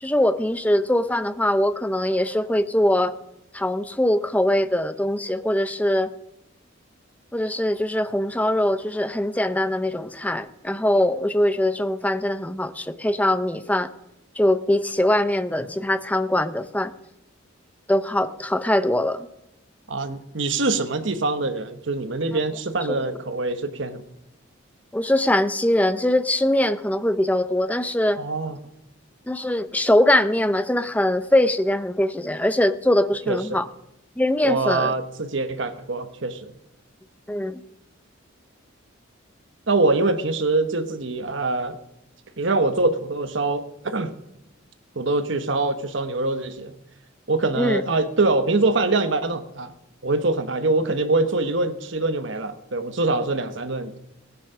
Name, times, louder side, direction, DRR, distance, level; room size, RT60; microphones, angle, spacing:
voice 1, 0.0-3.1 3.5-6.1 7.3-13.9 14.4-16.9 17.9-19.3 22.9-23.0 24.9-28.2 29.3-33.7 34.2-34.9 37.3-37.6 47.6-47.8, left 1 dB, 5° left, 12 dB, 0.5 m, -22 dB
voice 2, 19.9-24.0 28.2-28.6 33.3-33.6 34.4-36.5 39.7-41.8 42.4-44.1 44.9-46.7 47.3-49.7 50.0-54.0, right 2 dB, 60° right, 9 dB, 1.1 m, -24 dB
17.0 x 9.6 x 5.6 m, 0.86 s
head